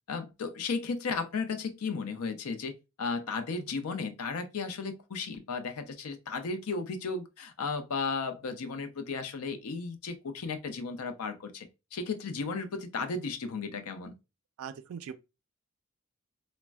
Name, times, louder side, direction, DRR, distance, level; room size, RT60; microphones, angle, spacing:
voice 1, 0.1-14.1, left 4 dB, 85° left, 0.5 m, -35 dB
voice 2, 14.6-15.1, right 7 dB, 75° right, 0.3 m, -40 dB
4.0 x 2.1 x 2.3 m
head